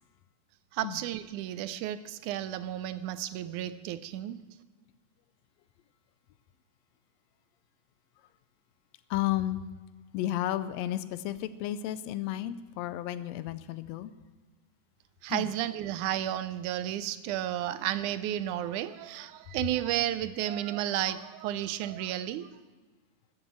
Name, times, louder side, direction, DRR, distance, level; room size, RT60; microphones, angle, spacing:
voice 1, 0.7-4.4 15.2-22.5, right 12 dB, 85° right, 14 dB, 2.1 m, -32 dB
voice 2, 9.1-9.6 10.1-14.1 15.3-15.5, left 13 dB, 80° left, 14 dB, 1.6 m, -32 dB
14.0 x 8.1 x 7.4 m, 1.3 s
omnidirectional pair, 3.5 m